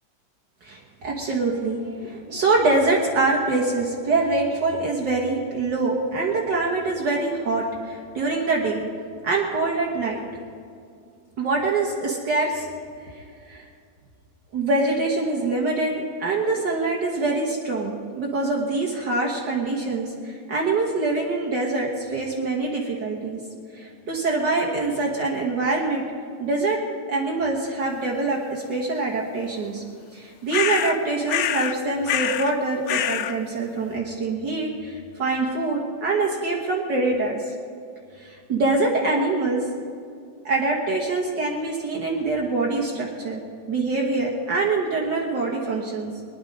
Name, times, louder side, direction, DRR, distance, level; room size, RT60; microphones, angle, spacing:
voice 1, 0.6-8.8 9.2-10.2 11.4-12.7 13.1-13.7 14.5-23.4 23.7-26.0 26.4-26.8 27.1-29.8 30.1-37.5 38.2-39.6 40.5-43.4 43.7-46.1, right 3 dB, 60° right, -2 dB, 1.9 m, -24 dB
sound 1, 30.5-31.0 31.3-31.8 32.1-32.5 32.9-33.3, left 10 dB, 80° left, 0.8 m, -25 dB
20.0 x 10.5 x 5.3 m, 2.4 s
omnidirectional pair, 2.3 m